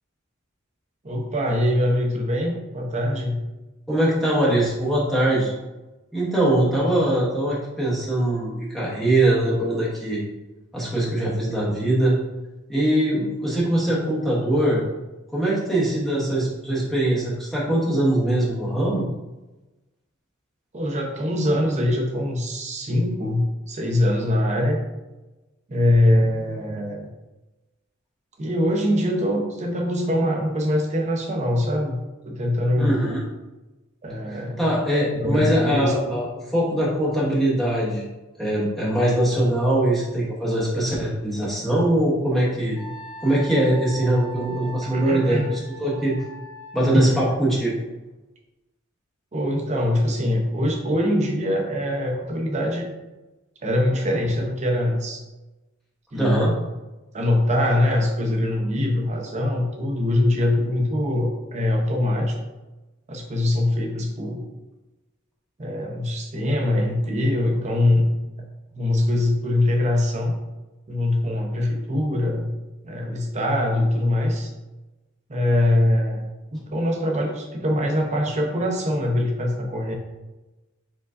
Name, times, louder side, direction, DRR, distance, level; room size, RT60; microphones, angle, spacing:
voice 1, 1.0-3.4 20.7-24.8 25.7-27.1 28.4-33.0 34.0-34.7 35.1-36.2 44.9-45.5 46.9-47.3 49.3-52.9 53.6-55.2 56.1-56.4 57.1-62.4 63.1-64.4 65.6-68.1 68.7-70.3 70.9-72.5 72.8-74.5 75.3-76.2 76.5-79.9, left 1 dB, 35° right, 1 dB, 0.7 m, -23 dB
voice 2, 3.9-5.5 6.1-10.2 10.7-12.1 12.7-14.8 15.3-19.0 32.8-33.2 34.3-36.3 36.5-38.0 38.4-42.8 43.2-46.1 46.7-47.7 56.1-56.5, right 1 dB, ahead, -7 dB, 0.9 m, -22 dB
Wind instrument woodwind instrument, 42.7-47.0, right 3 dB, 35° left, 1.4 m, -40 dB
4.5 x 3.8 x 2.5 m, 1.1 s
head